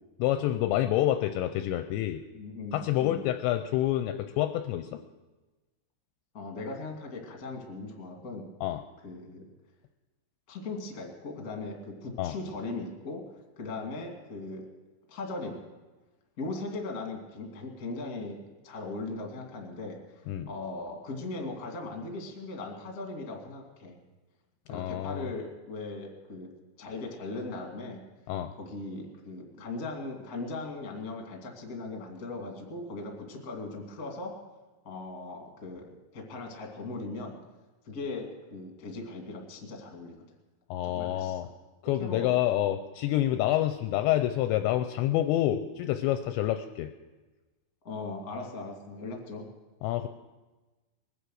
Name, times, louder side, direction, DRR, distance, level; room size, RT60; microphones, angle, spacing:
voice 1, 0.2-2.2 2.7-5.0 8.6-8.8 12.2-12.3 20.3-20.5 24.7-25.3 28.3-28.5 40.7-41.5 41.8-46.9 49.8-50.1, left 13 dB, 80° left, 8 dB, 2.6 m, -28 dB
voice 2, 2.3-3.2 6.3-8.5 9.0-9.4 10.5-13.2 13.5-14.6 15.1-15.6 16.4-20.0 20.5-23.9 24.7-26.5 26.8-28.0 28.6-34.3 34.8-37.4 37.8-40.1 40.8-41.4 42.0-42.4 47.8-49.5, left 3 dB, 35° left, 1 dB, 1.5 m, -39 dB
21.5 x 10.0 x 6.3 m, 1.2 s
omnidirectional pair, 5.5 m